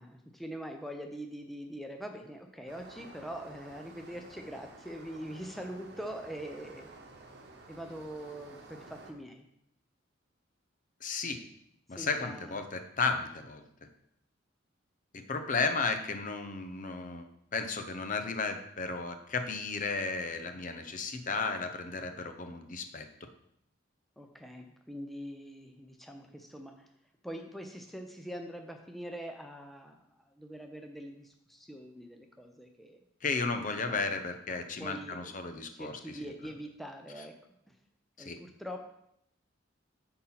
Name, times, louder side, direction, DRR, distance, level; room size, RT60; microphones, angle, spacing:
voice 1, 0.0-6.9 7.7-9.4 11.9-12.6 24.2-26.7 27.2-30.0 30.4-33.0 33.8-33.9 34.8-35.3 35.7-37.3 38.2-38.8, equal, ahead, 3 dB, 0.5 m, -43 dB
sound 1, 2.7-9.1, right 2 dB, 55° right, 1.0 m, -52 dB
voice 2, 11.0-11.4 11.9-13.6 15.1-17.3 17.5-23.1 33.2-36.5 37.2-37.3 38.2-38.4, left 4 dB, 40° left, 7 dB, 0.7 m, -34 dB
8.3 x 3.9 x 5.8 m, 0.76 s
head